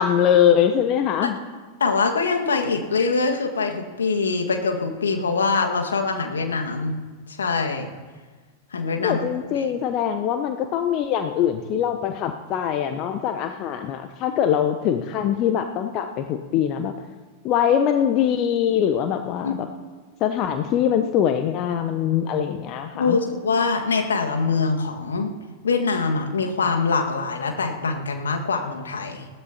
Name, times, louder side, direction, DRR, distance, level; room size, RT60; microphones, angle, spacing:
voice 1, 0.0-1.4 9.0-16.9 17.4-19.7 20.2-23.2, left 9 dB, 40° left, 7 dB, 0.8 m, -22 dB
voice 2, 1.8-6.9 7.3-7.9 8.7-9.2 19.4-19.6 22.9-25.3 25.6-29.3, left 4 dB, 70° left, 2 dB, 1.7 m, -23 dB
20.5 x 16.5 x 2.9 m, 1.4 s
figure-of-eight pair, 90°, 0 cm